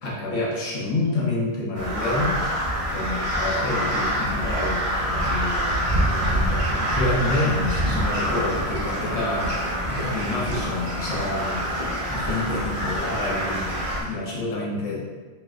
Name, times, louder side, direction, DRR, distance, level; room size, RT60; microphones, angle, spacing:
voice 1, 0.0-2.5 2.9-9.5 9.9-11.8 12.1-15.1, left 2 dB, 65° left, -4 dB, 1.2 m, -28 dB
Crow, 1.7-14.0, equal, 30° right, 0.7 m, -26 dB
4.6 x 3.2 x 2.4 m, 1.3 s
omnidirectional pair, 1.5 m